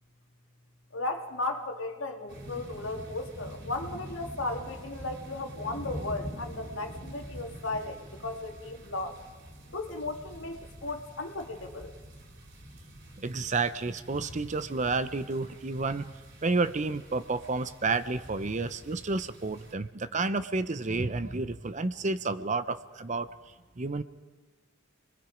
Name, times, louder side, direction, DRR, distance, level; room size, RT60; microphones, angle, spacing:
voice 1, 0.9-9.2 9.7-11.9, left 2 dB, 65° left, 4 dB, 2.0 m, -35 dB
sound 1, 2.3-19.7, equal, 55° right, 3.4 m, -46 dB
voice 2, 13.2-16.1 16.4-23.3 23.8-24.0, right 3 dB, 35° right, 13 dB, 0.6 m, -30 dB
28.5 x 21.0 x 5.1 m, 1.4 s
head